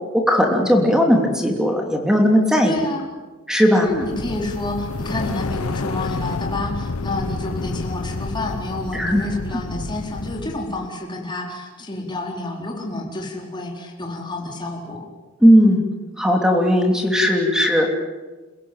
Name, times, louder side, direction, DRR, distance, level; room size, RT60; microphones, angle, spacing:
voice 1, 0.3-2.7 3.5-3.9 8.9-9.2 15.4-15.9 16.2-17.9, equal, 5° right, 2 dB, 3.2 m, -17 dB
voice 2, 2.7-3.1 3.8-15.1, left 2 dB, 20° left, 0 dB, 4.3 m, -29 dB
sound 1, 3.9-10.8, left 3 dB, 85° left, 0.9 m, -29 dB
29.0 x 16.5 x 9.2 m, 1.3 s
head